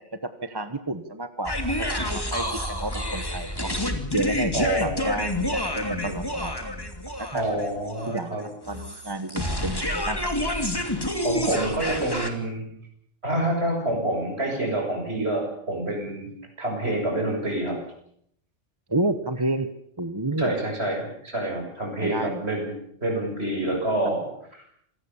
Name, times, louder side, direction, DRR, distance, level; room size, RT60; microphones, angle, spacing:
voice 1, 0.0-3.7 4.1-6.5 7.2-7.5 8.1-8.3 8.7-10.3 18.9-19.7 20.0-20.5 22.0-22.4, right 2 dB, 20° right, 10 dB, 1.2 m, -30 dB
sound 1, 1.4-12.3, left 1 dB, 20° left, 2.8 m, -28 dB
voice 2, 4.5-5.1 7.3-8.4 11.2-12.7 13.2-16.3 16.6-17.8 20.4-22.7 23.0-24.3, right 1 dB, 60° right, 2 dB, 7.5 m, -27 dB
27.5 x 19.0 x 7.2 m, 0.69 s
omnidirectional pair, 1.2 m